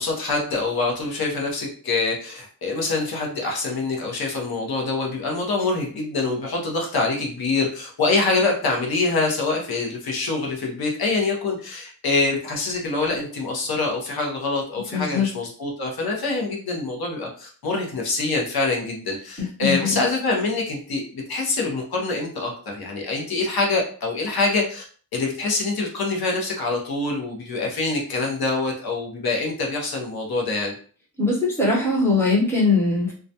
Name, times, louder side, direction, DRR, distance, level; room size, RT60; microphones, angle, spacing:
voice 1, 0.0-24.8 25.1-30.7, left 3 dB, 75° left, -1 dB, 0.7 m, -25 dB
voice 2, 14.9-15.3 19.4-20.0 31.2-33.1, left 3 dB, 5° left, -5 dB, 0.7 m, -21 dB
2.3 x 2.1 x 2.7 m, 0.43 s
wide cardioid pair, 175°, 37 cm